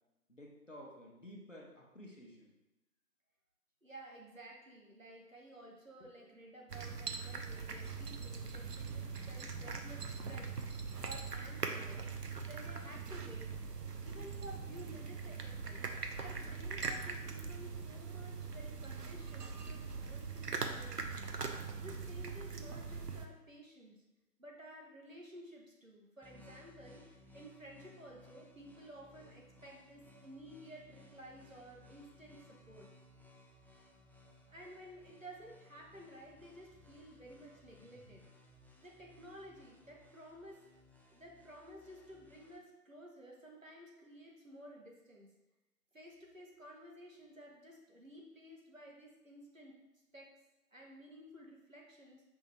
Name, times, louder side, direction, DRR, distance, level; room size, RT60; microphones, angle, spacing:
voice 1, 0.3-2.5, equal, 50° left, -2 dB, 0.9 m, -53 dB
voice 2, 3.8-10.5 11.0-12.1 12.4-13.5 14.0-15.8 16.2-21.3 21.8-24.0 24.4-32.9 34.5-38.3 38.8-40.6 41.1-45.3 45.9-49.7 50.1-50.3 50.7-52.2, right 1 dB, 55° right, -2 dB, 0.9 m, -54 dB
sound 1, 6.7-23.3, right 5 dB, 75° right, 0.6 m, -42 dB
sound 2, 26.2-42.6, left 2 dB, 5° left, 0.4 m, -61 dB
5.5 x 2.7 x 3.3 m, 1.0 s
figure-of-eight pair, 175°, 48 cm